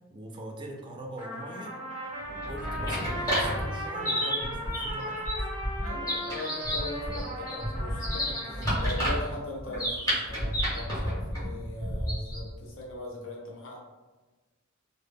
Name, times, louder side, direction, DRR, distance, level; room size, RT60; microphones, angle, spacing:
voice 1, 0.1-1.7 2.3-5.5 8.6-8.7, right 1 dB, 25° right, 1 dB, 0.3 m, -42 dB
Trumpet, 1.2-9.1, equal, 40° left, 0.9 m, -37 dB
sound 1, 2.3-12.5, equal, 15° left, 0.9 m, -31 dB
voice 2, 5.8-13.8, left 2 dB, 65° left, -2 dB, 0.6 m, -39 dB
2.0 x 2.0 x 3.4 m, 1.2 s
head